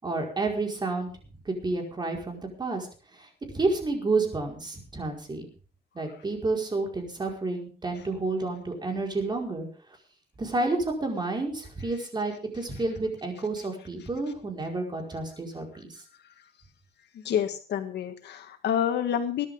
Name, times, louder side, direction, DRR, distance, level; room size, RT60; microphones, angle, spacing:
voice 1, 0.0-1.1 1.4-2.9 3.2-3.3 3.5-5.5 5.9-9.7 10.4-15.9, right 3 dB, 25° right, 2 dB, 5.0 m, -30 dB
voice 2, 17.1-19.5, left 9 dB, 85° left, 6 dB, 1.7 m, -28 dB
22.0 x 11.0 x 3.8 m, 0.38 s
cardioid pair, 135°, 17 cm